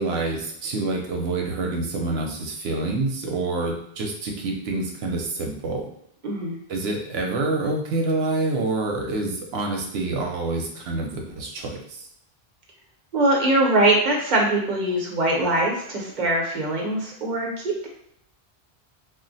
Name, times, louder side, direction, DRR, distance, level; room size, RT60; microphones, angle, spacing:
voice 1, 0.0-5.9 6.7-12.0, right 2 dB, 80° right, 1 dB, 0.9 m, -27 dB
voice 2, 13.1-17.9, right 1 dB, 50° right, -1 dB, 0.9 m, -22 dB
2.4 x 2.1 x 3.9 m, 0.71 s
omnidirectional pair, 1.0 m